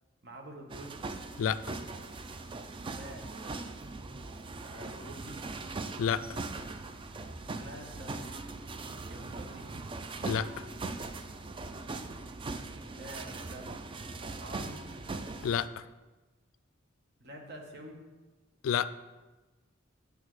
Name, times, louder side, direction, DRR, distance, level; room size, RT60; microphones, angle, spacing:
voice 1, 0.2-1.0 2.7-3.6 4.6-5.6 7.5-8.2 9.0-9.8 12.7-13.8 14.2-14.9 17.2-18.0, right 1 dB, 55° right, 1 dB, 1.1 m, -48 dB
sound 1, 0.7-15.7, right 3 dB, 25° right, 0.3 m, -40 dB
sound 2, 6.2-9.1, left 2 dB, 15° left, 1.9 m, -58 dB
voice 2, 10.2-10.6 15.4-15.8 18.6-18.9, left 8 dB, 75° left, 16 dB, 0.3 m, -29 dB
8.4 x 6.5 x 3.2 m, 1.2 s
head